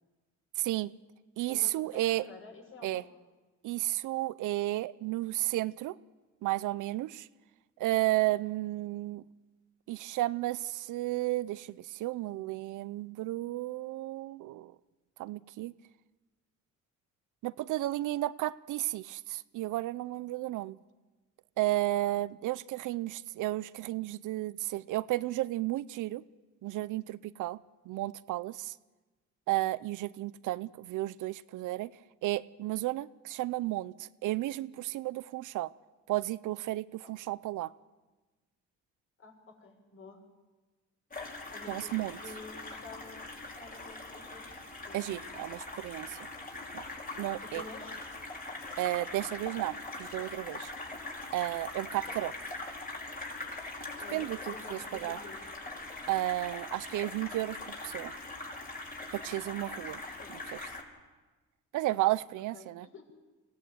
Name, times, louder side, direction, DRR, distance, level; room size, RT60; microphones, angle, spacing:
voice 1, 0.6-0.9 1.4-2.2 2.8-3.0 3.6-6.0 6.4-7.3 7.8-9.2 9.9-14.7 15.2-15.7 17.4-20.8 21.6-26.2 26.6-27.6 27.9-28.7 29.5-31.9 32.2-35.7 36.1-37.7 41.7-42.2 44.9-46.2 46.7-46.8 47.2-47.6 48.8-50.7 51.3-52.3 54.1-55.2 56.1-58.1 59.1-60.0 60.3-60.6 61.7-62.9, right 17 dB, 80° right, 17 dB, 0.6 m, -33 dB
voice 2, 1.5-3.1 37.0-37.1 39.2-40.2 41.5-45.2 47.4-48.0 54.0-55.4 60.2-60.3 61.9-62.0 62.5-63.0, left 3 dB, 45° left, 1 dB, 6.7 m, -50 dB
sound 1, 41.1-60.8, left 2 dB, 30° left, 5.2 m, -42 dB
22.5 x 17.0 x 8.0 m, 1.2 s
cardioid pair, 90°, 30 cm